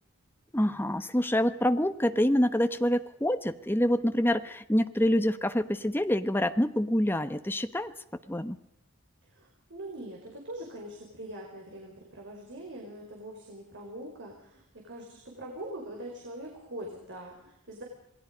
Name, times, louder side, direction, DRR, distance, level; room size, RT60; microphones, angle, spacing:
voice 1, 0.5-7.9 8.3-8.6, left 1 dB, 10° left, 9 dB, 1.0 m, -26 dB
voice 2, 9.2-17.8, right 1 dB, 55° right, 0 dB, 4.8 m, -43 dB
27.5 x 20.0 x 5.2 m, 0.80 s
head